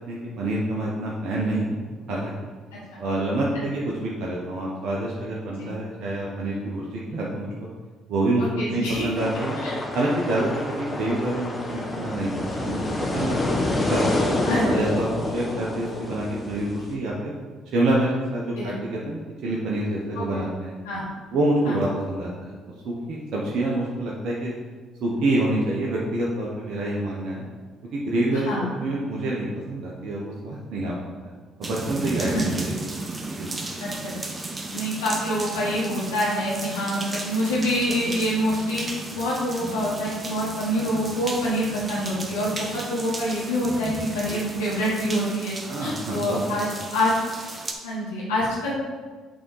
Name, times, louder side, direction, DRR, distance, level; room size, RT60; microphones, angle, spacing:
voice 1, 0.1-1.8 2.1-2.3 3.0-7.7 8.1-9.6 9.9-14.0 14.6-17.3 17.7-20.7 21.3-22.5 22.8-24.5 25.0-27.4 27.9-30.9 31.2-31.3 31.6-32.8 33.4-33.5 44.3-44.4 45.7-46.9, right 1 dB, 60° right, -4 dB, 1.0 m, -27 dB
voice 2, 8.4-9.2 9.6-9.7 14.4-14.8 15.5-15.6 18.6-18.7 20.1-20.2 20.8-21.1 21.6-21.8 28.4-28.7 32.2-32.4 33.8-34.1 34.7-38.8 39.1-47.1 47.8-48.9, equal, 85° left, -7 dB, 1.2 m, -26 dB
sound 1, 9.2-16.9, left 2 dB, 25° left, 1.3 m, -28 dB
sound 2, 31.6-47.7, right 2 dB, 30° right, 1.0 m, -34 dB
7.6 x 3.7 x 4.8 m, 1.5 s
hypercardioid pair, 50°, 0 cm